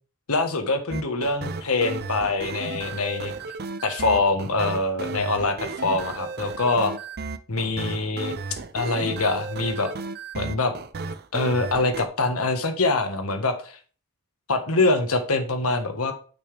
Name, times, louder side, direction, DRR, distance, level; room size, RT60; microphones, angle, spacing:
voice 1, 0.3-3.3 3.8-6.9 7.5-8.4 8.7-9.9 10.3-10.7 11.3-13.8 14.5-16.1, left 3 dB, 80° left, 7 dB, 1.4 m, -24 dB
sound 1, 0.9-12.1, right 4 dB, 45° right, 0.5 m, -34 dB
9.0 x 6.0 x 3.4 m, 0.40 s
head